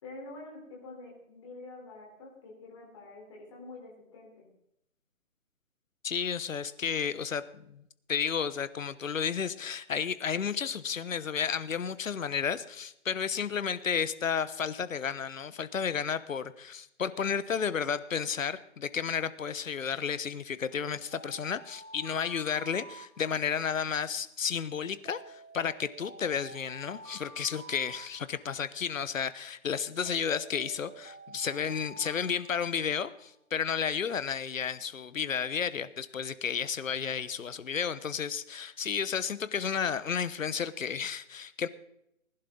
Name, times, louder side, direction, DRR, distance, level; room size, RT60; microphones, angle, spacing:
voice 1, 0.0-4.5, left 2 dB, 20° left, -2 dB, 3.7 m, -47 dB
voice 2, 6.0-7.8 8.1-41.7, left 7 dB, 70° left, 14 dB, 1.1 m, -32 dB
Alarm, 21.1-23.7 25.0-28.7 30.0-33.3, right 3 dB, 75° right, 2.4 m, -50 dB
20.0 x 11.0 x 3.8 m, 0.79 s
hypercardioid pair, 175°, 41 cm